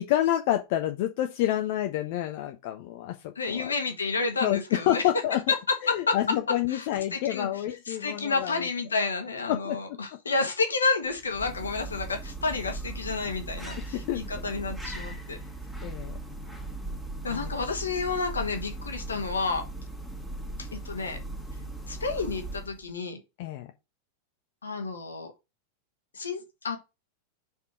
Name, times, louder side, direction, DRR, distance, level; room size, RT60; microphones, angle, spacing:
voice 1, 0.0-3.7 4.4-5.4 5.8-8.5 9.5-10.0 13.9-14.2 15.8-16.2 17.3-17.5 23.4-23.7, left 13 dB, 50° left, 0.8 m, -28 dB
voice 2, 3.3-5.0 5.5-6.3 6.7-15.4 17.2-19.6 20.6-21.2 21.9-23.2 24.6-25.3 26.1-26.8, left 4 dB, 75° left, 1.5 m, -30 dB
sound 1, 11.1-22.9, right 2 dB, 5° right, 2.1 m, -38 dB
5.5 x 4.5 x 4.8 m
figure-of-eight pair, 90°, 0 cm